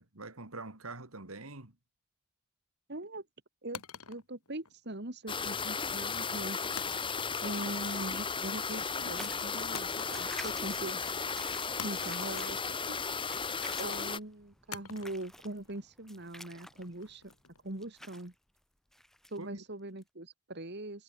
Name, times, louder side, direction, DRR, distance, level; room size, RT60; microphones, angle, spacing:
voice 1, 0.0-1.8 19.4-19.6, right 3 dB, 75° right, 3.2 m, -45 dB
voice 2, 2.9-3.3 3.6-3.8 4.1-6.6 7.4-11.0 11.8-13.0 13.8-17.2 17.6-18.3 19.3-21.0, right 1 dB, 50° right, 2.2 m, -41 dB
sound 1, 3.7-5.1 6.7-7.6 7.9-8.3 9.7-10.7 11.0-11.1 11.8-13.3 14.7-17.7, left 7 dB, 90° left, 2.5 m, -48 dB
sound 2, 5.3-14.2, left 5 dB, 25° left, 2.3 m, -35 dB
sound 3, 9.1-18.3 18.9-19.4 20.0-20.1, equal, ahead, 3.4 m, -50 dB
head